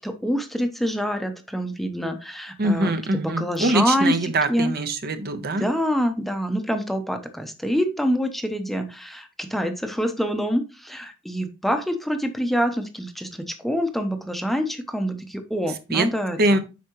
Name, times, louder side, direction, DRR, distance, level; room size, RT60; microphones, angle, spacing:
voice 1, 0.0-4.7 5.6-16.6, equal, ahead, 6 dB, 0.7 m, -26 dB
voice 2, 2.6-5.7 15.9-16.1 16.4-16.6, right 2 dB, 50° right, 9 dB, 0.8 m, -23 dB
8.3 x 5.5 x 3.0 m, 0.29 s
head